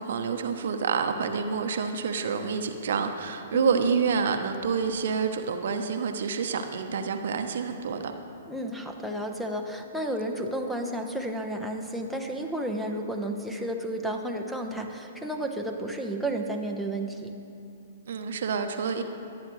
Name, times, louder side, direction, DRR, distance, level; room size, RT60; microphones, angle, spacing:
voice 1, 0.0-8.1 18.1-19.0, right 6 dB, 65° right, 6 dB, 0.9 m, -28 dB
voice 2, 3.5-3.8 8.5-17.3, right 1 dB, ahead, 3 dB, 1.0 m, -32 dB
23.0 x 9.5 x 3.2 m, 2.6 s
figure-of-eight pair, 115°, 0 cm